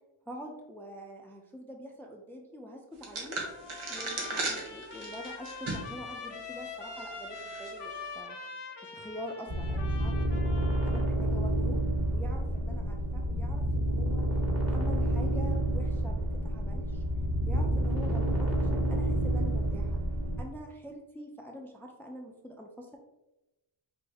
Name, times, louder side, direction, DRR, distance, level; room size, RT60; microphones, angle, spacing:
voice 1, 0.3-3.4 3.9-8.4 8.8-10.5 10.8-11.8 12.1-14.2 14.6-17.0 17.5-20.0 20.4-23.0, equal, 5° left, 1 dB, 0.4 m, -45 dB
sound 1, 3.0-6.0 6.4-6.5 7.3-7.7, right 3 dB, 85° right, 1.0 m, -36 dB
Trumpet, 3.4-11.1, left 4 dB, 60° left, 0.7 m, -43 dB
sound 2, 9.5-20.4, right 1 dB, 30° right, 0.8 m, -29 dB
4.6 x 2.6 x 3.2 m, 0.99 s
wide cardioid pair, 90°, 48 cm